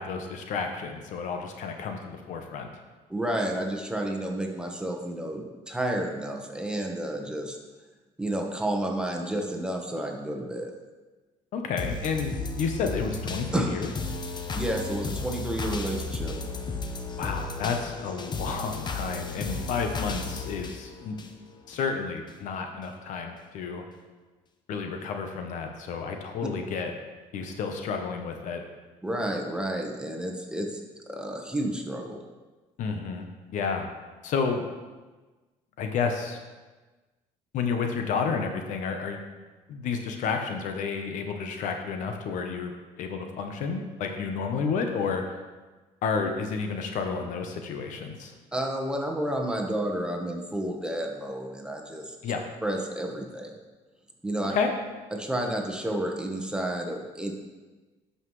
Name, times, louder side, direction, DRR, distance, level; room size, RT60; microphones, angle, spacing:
voice 1, 0.0-2.7 11.5-13.9 17.2-21.2 21.7-23.8 24.7-26.9 27.3-28.6 32.8-33.9 34.2-34.7 35.8-36.4 37.5-39.2 39.7-45.2 46.0-48.3 52.2-52.4 54.5-54.7, left 5 dB, 70° left, 4 dB, 0.9 m, -31 dB
voice 2, 3.1-7.6 8.2-10.7 13.5-13.7 14.5-16.3 29.0-30.8 31.1-32.2 48.5-52.2 52.6-53.6 54.2-54.5 55.1-57.3, right 1 dB, 5° right, 1 dB, 1.2 m, -31 dB
sound 1, 11.8-21.8 22.3-22.4, left 3 dB, 35° left, 0.8 m, -34 dB
11.5 x 5.6 x 3.2 m, 1.3 s
cardioid pair, 90°, 13 cm